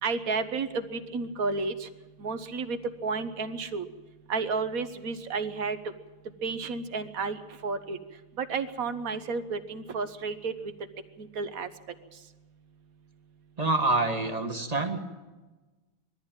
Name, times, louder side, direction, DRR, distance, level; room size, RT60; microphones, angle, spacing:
voice 1, 0.0-1.9 2.2-3.8 4.3-5.8 6.4-8.0 8.4-10.7 11.2-11.7, right 4 dB, 50° right, 11 dB, 1.3 m, -32 dB
voice 2, 13.6-15.0, right 2 dB, 20° right, 5 dB, 1.4 m, -26 dB
21.0 x 14.0 x 9.0 m, 1.2 s
omnidirectional pair, 2.2 m